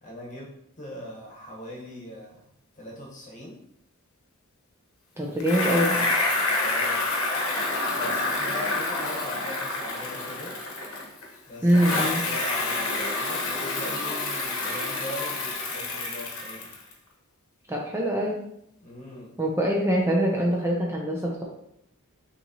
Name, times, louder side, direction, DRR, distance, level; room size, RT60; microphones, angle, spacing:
voice 1, 0.0-2.5 2.7-3.6 5.1-5.4 5.9-6.1 6.4-7.0 7.9-10.6 11.5-16.7 18.8-19.4, left 1 dB, 35° left, -2 dB, 1.1 m, -40 dB
voice 2, 5.2-6.0 11.6-12.2 17.7-18.4 19.4-21.4, equal, 10° right, -2 dB, 0.5 m, -24 dB
Bicycle, 5.4-11.3 11.7-16.9, left 2 dB, 80° left, 1.0 m, -28 dB
6.2 x 3.0 x 2.8 m, 0.76 s
head